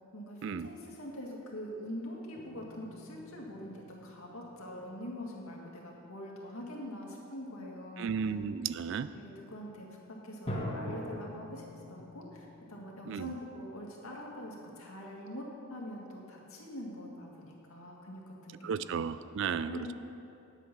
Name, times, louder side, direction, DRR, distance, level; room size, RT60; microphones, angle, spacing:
voice 1, 0.1-8.1 9.1-18.9 19.7-19.9, left 1 dB, 75° left, -2 dB, 2.0 m, -44 dB
sound 1, 2.3-5.3 5.9-6.2 10.5-14.8, equal, 25° left, 1.7 m, -44 dB
voice 2, 8.0-9.1 13.1-13.4 18.6-19.9, right 6 dB, 55° right, 14 dB, 0.3 m, -34 dB
9.9 x 8.5 x 6.0 m, 2.9 s
head